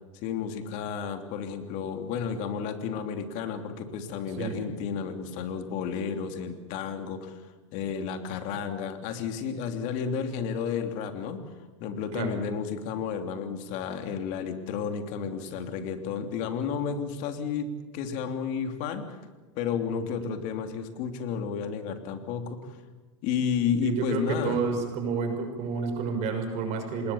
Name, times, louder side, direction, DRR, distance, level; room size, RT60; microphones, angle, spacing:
voice 1, 0.1-7.4 7.7-11.4 11.8-17.7 17.9-19.2 19.5-22.8 23.2-24.6, left 7 dB, 55° left, 7 dB, 3.1 m, -32 dB
voice 2, 4.3-4.8 12.1-12.5 19.9-20.3 23.8-27.1, right 5 dB, 45° right, 6 dB, 6.1 m, -30 dB
27.0 x 20.5 x 7.3 m, 1.2 s
supercardioid pair, 130°, 16 cm